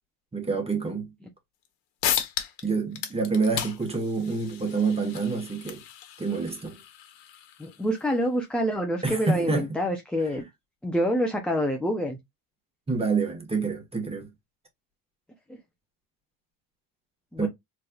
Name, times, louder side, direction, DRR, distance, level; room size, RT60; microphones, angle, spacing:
voice 1, 0.3-1.1 2.6-5.8 6.2-6.8 9.0-9.7 12.9-14.3 17.4-17.5, right 4 dB, 15° right, 1.4 m, -27 dB
sound 1, 1.7-1.8 2.0-2.7 2.9-8.1, left 10 dB, 80° left, 1.3 m, -34 dB
voice 2, 7.6-10.5 10.8-12.2 17.3-17.5, equal, ahead, 0.6 m, -27 dB
4.3 x 3.3 x 2.3 m
cardioid pair, 140°, 43 cm